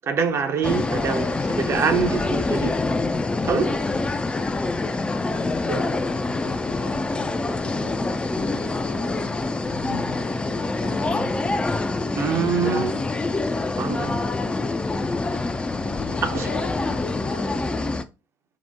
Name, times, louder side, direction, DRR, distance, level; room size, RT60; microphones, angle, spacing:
voice 1, 0.0-2.8 3.4-3.8 5.7-6.0 12.2-13.0 13.8-14.2 16.2-16.5, right 5 dB, 45° right, 0.6 m, -25 dB
sound 1, 0.6-18.0, left 3 dB, 15° left, 0.3 m, -26 dB
voice 2, 5.4-8.1 8.3-10.3 10.6-11.5 15.8-17.9, left 5 dB, 80° left, 0.6 m, -41 dB
2.8 x 2.1 x 3.4 m
hypercardioid pair, 55°, 6 cm